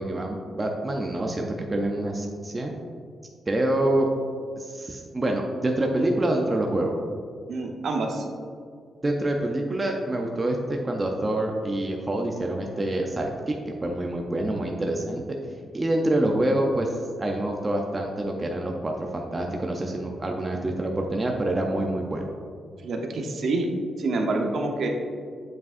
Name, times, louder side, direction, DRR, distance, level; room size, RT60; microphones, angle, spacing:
voice 1, 0.0-2.7 3.5-4.1 4.6-7.0 9.0-15.2 15.7-22.2, right 1 dB, 20° right, 1 dB, 0.5 m, -26 dB
voice 2, 7.5-8.3 22.8-23.7 24.0-24.9, right 3 dB, 55° right, 2 dB, 0.7 m, -27 dB
8.1 x 5.0 x 2.5 m, 2.1 s
wide cardioid pair, 160°, 0 cm